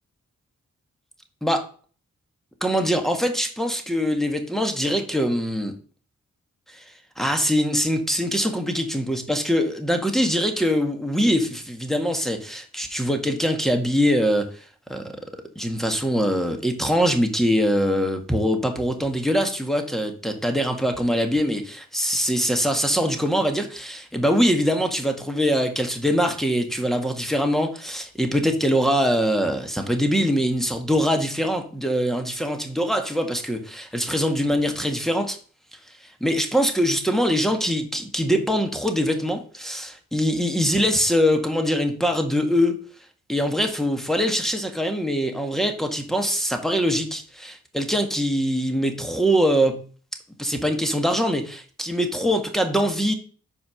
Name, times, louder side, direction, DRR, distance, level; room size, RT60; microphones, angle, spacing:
voice 1, 2.6-5.7 6.7-6.8 7.2-15.2 15.6-35.4 36.0-42.8 43.3-49.8 50.4-53.1, equal, ahead, 3 dB, 1.8 m, -23 dB
5.6 x 4.8 x 6.4 m, 0.42 s
supercardioid pair, 40°, 33 cm